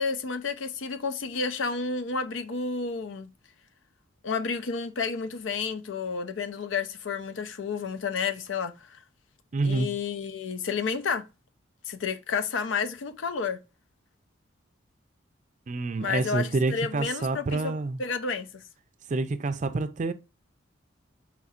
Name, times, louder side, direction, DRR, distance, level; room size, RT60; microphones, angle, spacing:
voice 1, 0.0-3.3 4.2-9.0 9.6-11.2 11.8-13.6 16.0-17.7 18.0-18.6, left 5 dB, 80° left, 0.6 m, -31 dB
voice 2, 9.5-10.0 15.7-18.0 19.1-20.1, right 3 dB, 40° right, 0.4 m, -28 dB
4.3 x 4.2 x 2.4 m
head